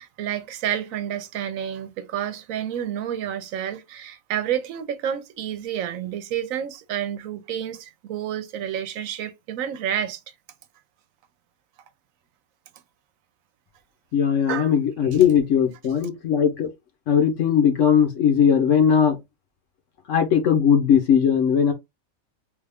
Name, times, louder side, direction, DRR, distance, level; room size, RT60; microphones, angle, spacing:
voice 1, 0.0-10.2 14.5-14.7, right 10 dB, 75° right, 1.0 m, -29 dB
voice 2, 14.1-16.7 17.1-19.2 20.1-21.7, left 8 dB, 65° left, 1.1 m, -19 dB
3.5 x 2.4 x 3.4 m
omnidirectional pair, 1.4 m